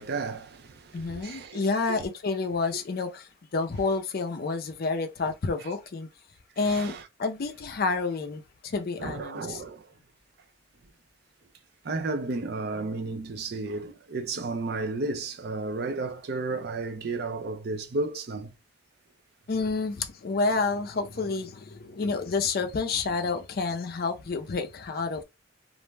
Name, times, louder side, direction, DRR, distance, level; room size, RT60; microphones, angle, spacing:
voice 1, 0.0-1.6 5.2-5.3 5.6-5.7 6.6-7.1 9.0-9.9 11.8-18.5, right 3 dB, 55° right, 0.5 m, -33 dB
voice 2, 0.9-6.1 6.6-9.6 19.5-25.2, left 4 dB, 50° left, 0.4 m, -29 dB
2.5 x 2.1 x 3.1 m
head